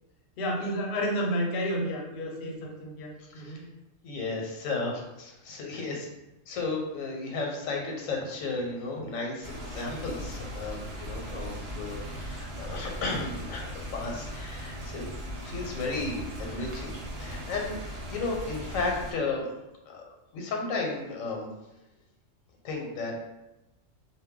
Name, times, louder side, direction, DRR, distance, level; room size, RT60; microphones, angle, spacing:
voice 1, 0.4-3.6, equal, 60° left, 0 dB, 0.7 m, -31 dB
voice 2, 4.0-6.0 6.5-15.1 15.4-17.8 18.1-19.5 19.9-20.0 20.3-21.5 22.6-23.3, left 3 dB, 85° left, 0 dB, 1.0 m, -34 dB
sound 1, 9.4-19.1, equal, 60° right, 0.8 m, -38 dB
2.2 x 2.1 x 3.5 m, 0.95 s
omnidirectional pair, 1.4 m